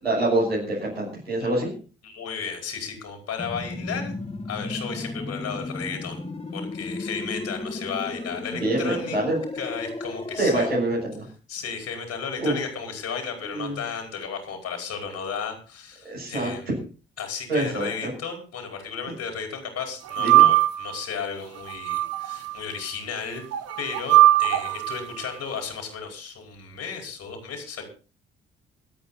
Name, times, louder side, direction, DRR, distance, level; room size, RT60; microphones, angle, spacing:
voice 1, 0.0-1.7 8.5-9.4 10.4-11.3 12.4-12.5 13.5-13.8 16.0-16.5 17.5-18.1 20.2-20.5, right 1 dB, 90° right, -4 dB, 5.9 m, -25 dB
voice 2, 2.0-4.1 4.5-6.2 6.5-9.2 9.5-10.7 11.5-16.7 17.2-23.4 23.8-27.8, left 6 dB, 60° left, 4 dB, 4.8 m, -34 dB
sound 1, 3.4-10.8, left 2 dB, 20° left, 2.5 m, -34 dB
sound 2, 20.1-21.0 21.7-22.5 23.5-25.0, right 15 dB, 55° right, 1.3 m, -19 dB
25.5 x 8.6 x 4.1 m, 0.36 s
figure-of-eight pair, 45°, 30 cm